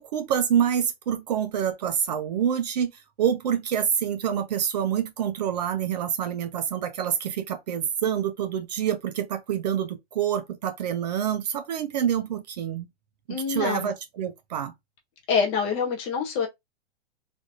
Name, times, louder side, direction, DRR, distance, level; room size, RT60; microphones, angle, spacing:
voice 1, 0.0-2.9 3.2-12.9 13.3-14.7, right 9 dB, 40° right, 0.5 m, -27 dB
voice 2, 13.3-13.9 15.3-16.5, left 6 dB, 20° left, 0.6 m, -26 dB
3.4 x 2.6 x 2.4 m
hypercardioid pair, 150°, 33 cm